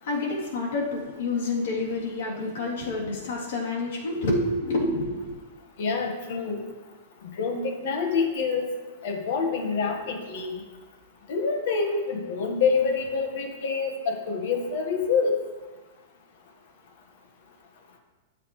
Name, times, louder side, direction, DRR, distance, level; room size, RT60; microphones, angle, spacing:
voice 1, 0.0-5.4, left 2 dB, 75° left, -4 dB, 3.3 m, -28 dB
voice 2, 5.8-6.6 7.3-8.7 9.0-10.6 11.3-15.4, left 5 dB, 60° left, 3 dB, 1.6 m, -26 dB
12.5 x 7.8 x 3.3 m, 1.3 s
supercardioid pair, 160°, 0 cm